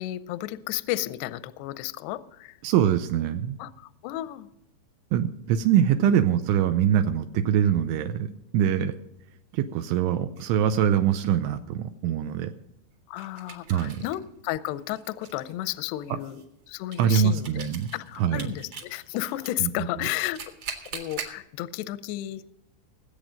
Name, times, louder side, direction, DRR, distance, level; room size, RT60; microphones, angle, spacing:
voice 1, 0.0-2.6 3.6-4.5 6.0-6.2 8.8-8.9 13.1-16.4 16.7-17.7 17.9-20.4 20.9-22.4, left 15 dB, 80° left, 14 dB, 2.4 m, -33 dB
voice 2, 2.6-3.6 5.1-8.9 9.5-12.5 13.7-14.0 17.0-17.9 18.2-18.5 19.6-19.9, right 9 dB, 80° right, 7 dB, 3.0 m, -23 dB
sound 1, 6.4-7.1 9.5-9.7 10.4-10.5 13.2-14.2 14.7-19.5 20.0-21.4, right 6 dB, 50° right, 2.1 m, -42 dB
20.0 x 8.3 x 5.1 m, 0.84 s
omnidirectional pair, 5.5 m